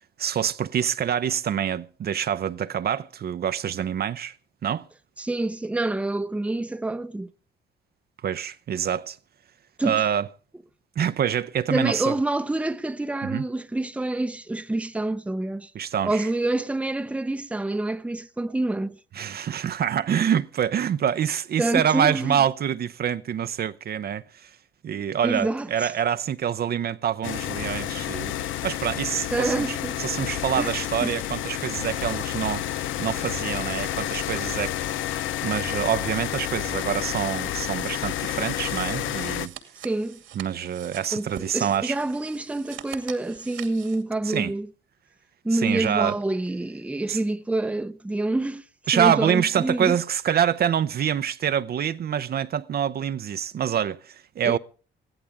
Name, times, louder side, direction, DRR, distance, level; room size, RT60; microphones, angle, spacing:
voice 1, 0.2-4.3 4.6-4.9 8.2-9.2 9.8-10.3 11.0-12.2 13.2-13.4 15.7-16.3 19.2-24.5 24.8-28.3 28.6-34.8 35.4-39.5 40.4-42.0 44.3-44.5 45.5-46.2 47.1-47.2 48.9-54.6, right 9 dB, 50° right, 0.7 m, -26 dB
voice 2, 5.2-7.3 9.8-10.0 11.7-15.7 16.0-19.0 21.6-22.4 25.2-25.9 29.3-30.0 30.6-31.1 39.8-40.2 41.1-44.7 45.4-48.6 48.9-50.0 54.4-54.6, right 2 dB, 5° right, 0.7 m, -27 dB
sound 1, 27.2-39.5, left 12 dB, 80° left, 0.7 m, -30 dB
sound 2, 38.2-44.0, right 11 dB, 85° right, 2.5 m, -44 dB
22.0 x 15.5 x 3.5 m
cardioid pair, 90°, 20 cm